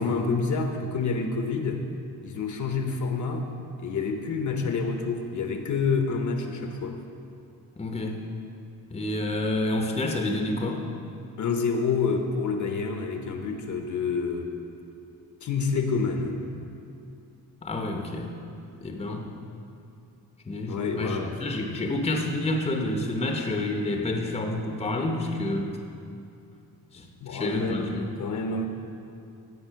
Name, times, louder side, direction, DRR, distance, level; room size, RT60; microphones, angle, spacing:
voice 1, 0.0-1.8 2.2-3.5 3.8-7.0 11.4-14.5 15.4-16.4 20.7-21.3 27.2-28.7, left 4 dB, 50° left, 5 dB, 0.9 m, -28 dB
voice 2, 7.8-8.2 8.9-10.9 17.6-18.3 18.8-19.3 20.5-25.8 26.9-28.1, left 1 dB, 15° left, 2 dB, 0.8 m, -29 dB
15.5 x 5.5 x 5.6 m, 2.6 s
wide cardioid pair, 160°, 37 cm